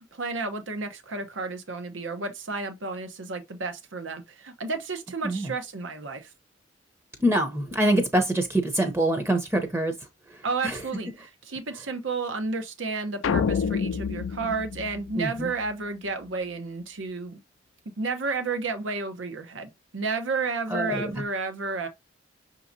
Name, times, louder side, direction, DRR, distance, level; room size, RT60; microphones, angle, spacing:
voice 1, 0.0-6.3 10.4-17.4 18.0-21.9, right 4 dB, 90° right, 0.9 m, -32 dB
voice 2, 7.2-9.9 10.6-10.8 15.2-15.5 20.7-21.1, right 1 dB, 15° right, 0.6 m, -24 dB
sound 1, 13.2-15.7, left 6 dB, 90° left, 0.4 m, -28 dB
5.9 x 2.9 x 2.6 m
head